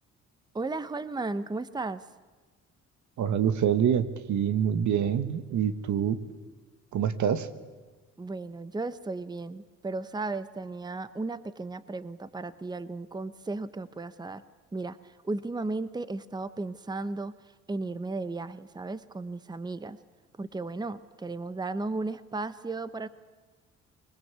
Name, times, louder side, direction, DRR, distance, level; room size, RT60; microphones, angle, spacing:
voice 1, 0.5-2.0 8.2-14.4 14.7-17.3 17.7-20.0 20.4-23.1, right 3 dB, 15° right, 14 dB, 0.9 m, -35 dB
voice 2, 3.2-6.2 6.9-7.5, right 8 dB, 70° right, 11 dB, 1.5 m, -26 dB
25.5 x 20.5 x 8.2 m, 1.3 s
cardioid pair, 90°, 30 cm